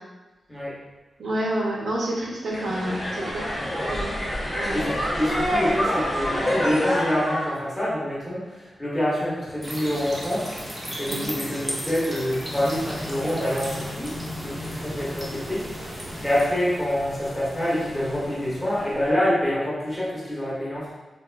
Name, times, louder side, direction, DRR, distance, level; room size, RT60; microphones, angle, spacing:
voice 1, 1.2-3.5 3.8-4.1 4.5-4.8 11.1-11.3, right 1 dB, 70° right, -4 dB, 0.5 m, -28 dB
sound 1, 2.5-7.6, equal, 35° left, 0.7 m, -26 dB
voice 2, 3.5-3.9 4.7-10.5 11.0-15.7 16.2-20.9, left 1 dB, 5° left, -9 dB, 0.9 m, -26 dB
sound 2, 9.6-16.5, equal, 20° right, 0.5 m, -35 dB
sound 3, 12.4-19.1, left 1 dB, 90° left, 0.9 m, -39 dB
3.5 x 2.3 x 2.3 m, 1.2 s
wide cardioid pair, 170°, 0 cm